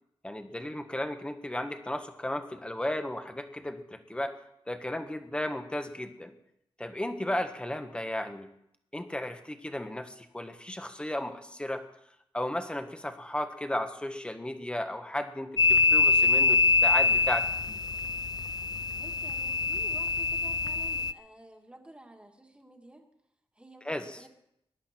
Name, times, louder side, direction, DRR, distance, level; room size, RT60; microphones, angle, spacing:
voice 1, 0.2-4.3 4.7-6.3 6.8-8.5 8.9-11.9 12.3-17.8 23.8-24.2, left 1 dB, 10° left, 7 dB, 1.4 m, -34 dB
sound 1, 15.6-21.1, left 4 dB, 45° left, 0.5 m, -25 dB
voice 2, 19.0-23.0 23.6-24.3, right 1 dB, 10° right, 2 dB, 2.1 m, -51 dB
21.0 x 11.0 x 4.4 m, 0.78 s
wide cardioid pair, 110°, 10 cm